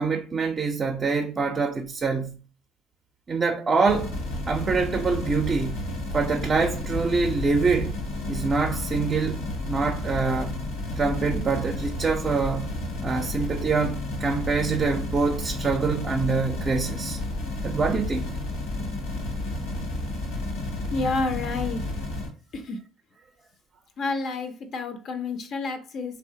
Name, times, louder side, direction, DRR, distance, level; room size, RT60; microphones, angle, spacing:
voice 1, 0.0-2.4 3.3-4.2 4.5-5.9 6.1-8.0 8.3-10.6 11.0-12.7 13.0-17.2 17.6-18.3, right 4 dB, 35° right, 0.4 m, -25 dB
sound 1, 3.9-22.3, left 2 dB, 85° left, 1.0 m, -31 dB
voice 2, 20.9-21.9 22.5-22.8 24.0-26.2, left 3 dB, 55° left, 0.4 m, -29 dB
3.0 x 2.0 x 2.7 m
supercardioid pair, 75°, 0 cm